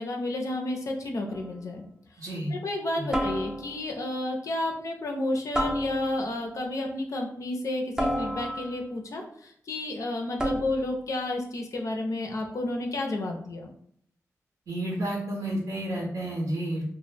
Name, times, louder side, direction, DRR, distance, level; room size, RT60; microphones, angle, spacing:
voice 1, 0.0-1.8 2.5-13.7, left 1 dB, 60° left, 2 dB, 0.5 m, -31 dB
sound 1, 1.3-1.7 3.1-3.9 5.5-6.4 8.0-8.9 10.4-11.0, equal, 10° right, 0.5 m, -30 dB
voice 2, 2.2-2.5 3.0-3.1 14.7-16.9, right 1 dB, 75° right, -3 dB, 0.7 m, -31 dB
2.1 x 2.0 x 3.2 m, 0.65 s
cardioid pair, 50°, 6 cm